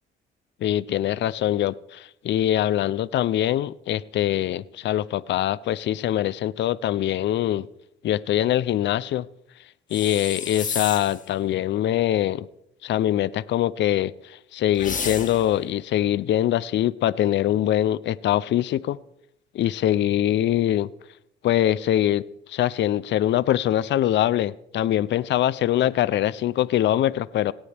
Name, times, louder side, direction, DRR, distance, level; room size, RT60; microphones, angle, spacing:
voice 1, 0.6-7.7 8.0-9.3 9.9-12.5 12.8-19.0 19.5-20.9 21.4-22.2 22.5-27.5, left 12 dB, 65° left, 19 dB, 0.5 m, -23 dB
sound 1, 9.9-11.3 14.8-15.6, left 5 dB, 40° left, 1.8 m, -31 dB
18.0 x 17.5 x 3.4 m, 0.78 s
cardioid pair, 90°, 20 cm